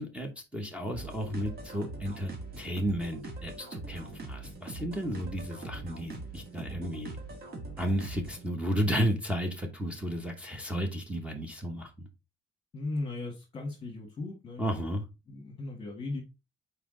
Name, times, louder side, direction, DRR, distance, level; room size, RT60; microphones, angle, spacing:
voice 1, 0.0-2.3 2.6-7.2 7.8-12.1 14.6-15.0, equal, 5° right, 0.9 m, -33 dB
sound 1, 0.9-8.5, right 3 dB, 55° right, 1.8 m, -42 dB
voice 2, 12.7-14.7 15.3-16.2, left 2 dB, 30° left, 1.5 m, -37 dB
5.8 x 4.5 x 3.7 m
cardioid pair, 165°, 19 cm